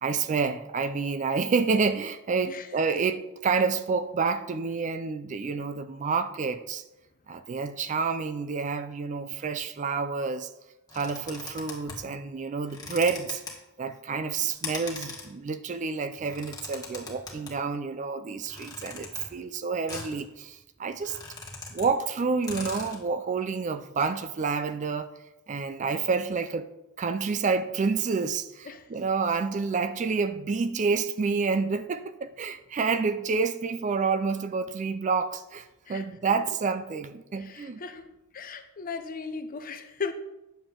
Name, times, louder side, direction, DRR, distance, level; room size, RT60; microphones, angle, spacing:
voice 1, 0.0-6.8 7.3-10.5 10.9-13.4 13.8-21.2 21.7-25.1 25.5-26.7 27.0-37.8, right 5 dB, 35° right, 0.4 m, -29 dB
sound 1, 10.9-12.1 12.7-13.5 14.5-15.3 16.2-17.5 18.5-19.3 19.9-20.2 20.6-20.7 20.9-21.9 22.2-22.3 22.4-23.0, left 4 dB, 20° left, 1.5 m, -40 dB
voice 2, 37.4-38.1 38.3-40.1, left 5 dB, 40° left, 0.6 m, -37 dB
9.1 x 6.8 x 3.7 m
head